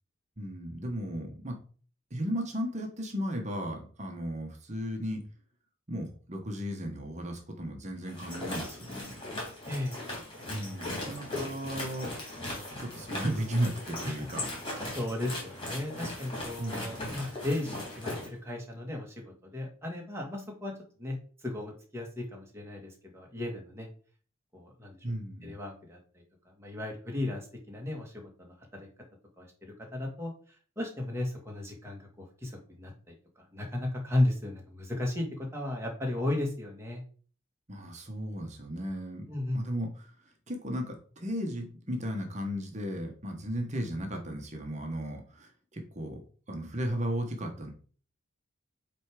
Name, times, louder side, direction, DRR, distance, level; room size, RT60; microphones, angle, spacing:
voice 1, 0.4-1.6 2.1-5.2 5.9-9.2 10.5-12.1 12.8-14.4 16.6-17.2 25.0-25.6 37.7-39.3 39.5-46.2 46.5-47.7, equal, 35° right, 2 dB, 1.3 m, -35 dB
sound 1, 8.1-18.3, left 1 dB, 25° left, 3.0 m, -38 dB
voice 2, 14.9-20.7 21.0-21.2 21.4-23.9 24.5-25.0 25.4-26.2 26.6-28.1 28.4-28.9 29.4-30.3 30.8-37.0 39.3-39.6, left 1 dB, 15° right, 0 dB, 1.9 m, -35 dB
8.2 x 3.5 x 4.9 m, 0.42 s
head